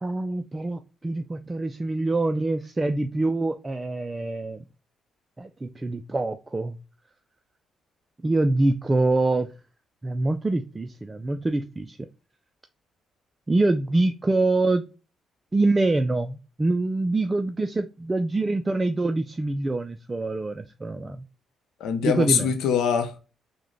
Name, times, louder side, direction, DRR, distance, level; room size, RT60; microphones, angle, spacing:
voice 1, 0.0-4.6 5.4-6.8 8.2-9.5 10.0-12.0 13.5-14.9 15.5-21.2 22.0-22.5, right 2 dB, 20° right, 0.3 m, -25 dB
voice 2, 21.8-23.2, left 7 dB, 80° left, 0.6 m, -23 dB
3.7 x 2.1 x 3.1 m
cardioid pair, 90°, 0 cm